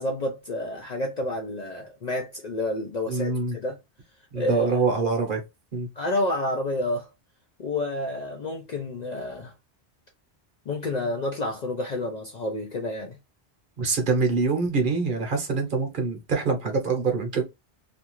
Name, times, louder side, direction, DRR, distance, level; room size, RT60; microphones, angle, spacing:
voice 1, 0.0-3.8 4.3-4.7 6.0-7.1 7.6-9.5 10.7-13.2, left 1 dB, 55° left, 0.5 m, -29 dB
voice 2, 3.1-3.6 4.3-5.4 5.7-5.9 13.8-17.4, right 4 dB, 55° right, 0.9 m, -25 dB
2.6 x 2.3 x 2.9 m
omnidirectional pair, 1.1 m